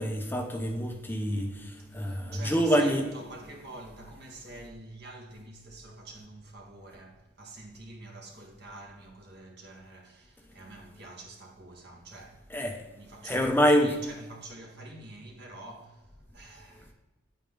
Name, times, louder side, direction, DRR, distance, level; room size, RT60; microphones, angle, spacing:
voice 1, 0.0-3.0 12.5-12.8 13.2-14.0, equal, 10° left, 0.7 m, -26 dB
voice 2, 1.8-16.9, right 2 dB, 50° right, 2.1 m, -47 dB
9.9 x 8.3 x 3.8 m
head